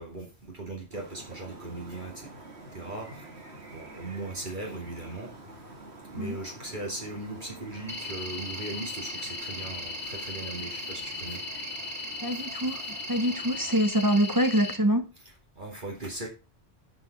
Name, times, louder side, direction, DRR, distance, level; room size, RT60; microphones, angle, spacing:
voice 1, 0.0-2.3 2.7-3.2 3.7-5.3 6.1-11.4 15.5-16.3, right 2 dB, 45° right, 2.7 m, -38 dB
sound 1, 0.9-13.8, right 2 dB, 70° right, 2.2 m, -47 dB
sound 2, 7.9-14.7, left 2 dB, 10° left, 2.6 m, -37 dB
voice 2, 12.2-15.1, equal, 20° right, 0.8 m, -25 dB
11.0 x 5.3 x 5.3 m
omnidirectional pair, 1.1 m